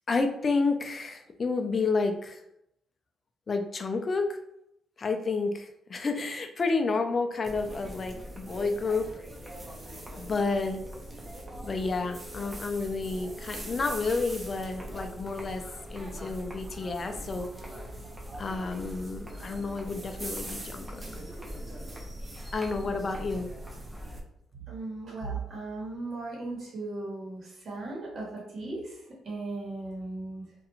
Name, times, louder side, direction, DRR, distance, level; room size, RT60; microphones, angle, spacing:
voice 1, 0.1-2.4 3.5-4.4 5.0-9.1 10.1-10.8 11.6-15.6 15.9-17.5 18.4-21.0 22.5-23.5, left 3 dB, 35° left, 6 dB, 0.4 m, -30 dB
sound 1, 7.4-24.2, right 1 dB, 20° right, 0.6 m, -41 dB
voice 2, 24.7-30.4, right 3 dB, 50° right, -5 dB, 1.1 m, -37 dB
2.4 x 2.2 x 2.9 m, 0.79 s
cardioid pair, 90°, 0 cm